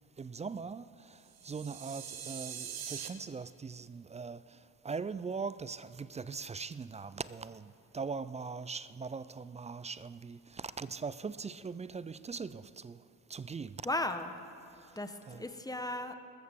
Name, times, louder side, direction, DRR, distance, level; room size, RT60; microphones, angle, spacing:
voice 1, 0.2-4.6 4.8-13.0 13.3-13.8 15.3-15.4, right 5 dB, 20° right, 0.3 m, -41 dB
sound 1, 1.3-3.1, right 8 dB, 60° right, 1.3 m, -43 dB
voice 2, 13.8-14.3 15.0-16.1, left 1 dB, 10° left, 1.1 m, -35 dB
21.0 x 13.5 x 3.7 m
supercardioid pair, 65°, 42 cm